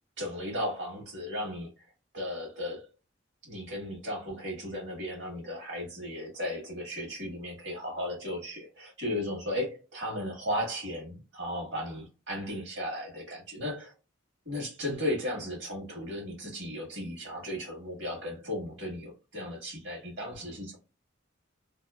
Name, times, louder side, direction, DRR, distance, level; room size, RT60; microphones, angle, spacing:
voice 1, 0.2-1.8 2.1-2.8 3.4-13.9 14.4-20.8, left 1 dB, 60° right, 1.5 m, -35 dB
2.8 x 2.6 x 2.2 m
head